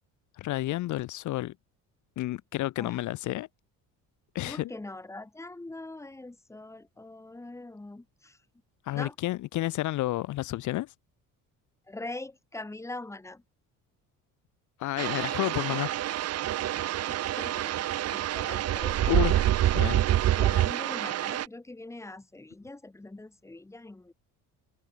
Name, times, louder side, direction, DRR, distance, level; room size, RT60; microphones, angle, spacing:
voice 1, 0.4-1.5 2.2-3.5 4.3-4.7 8.8-10.9 14.8-16.0 19.1-19.4 19.7-20.0, left 16 dB, 60° left, 1.2 m, -30 dB
voice 2, 4.4-8.4 8.9-9.2 11.9-13.4 17.1-19.5 19.8-20.1 20.4-24.1, left 2 dB, 10° left, 4.0 m, -42 dB
sound 1, 15.0-21.5, right 13 dB, 50° right, 1.3 m, -27 dB
open air
cardioid pair, 155°, 33 cm